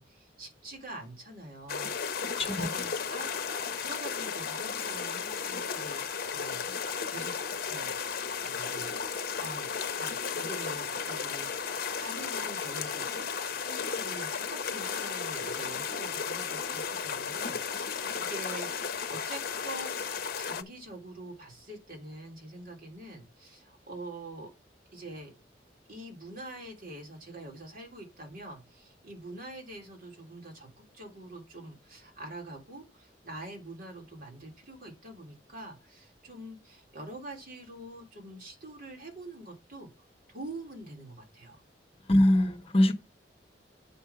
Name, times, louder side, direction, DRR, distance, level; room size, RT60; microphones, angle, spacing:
voice 1, 0.0-6.0 6.3-7.3 7.7-7.9 8.4-9.0 9.4-13.3 13.6-24.5 24.9-25.3 25.9-39.9 40.3-41.6 42.1-42.3, right 1 dB, 55° right, 3.2 m, -45 dB
sound 1, 1.7-20.6, left 6 dB, 55° left, 0.8 m, -34 dB
voice 2, 42.1-42.9, left 1 dB, 35° left, 1.0 m, -22 dB
8.3 x 5.4 x 5.6 m
head